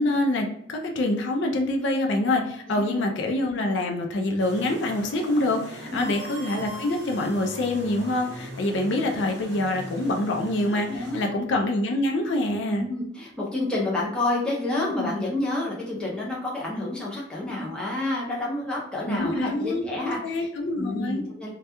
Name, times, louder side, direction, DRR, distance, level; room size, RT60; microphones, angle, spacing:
voice 1, 0.0-12.9 15.0-15.1 19.1-21.2, left 1 dB, 70° left, 3 dB, 0.4 m, -26 dB
voice 2, 2.7-3.0 5.9-6.1 10.7-11.2 12.7-20.5 20.8-21.5, left 2 dB, 5° left, -5 dB, 0.5 m, -29 dB
sound 1, 4.4-11.3, equal, 65° right, 0.7 m, -42 dB
sound 2, 6.0-8.3, right 1 dB, 30° right, 0.8 m, -43 dB
2.2 x 2.1 x 2.8 m, 0.71 s
head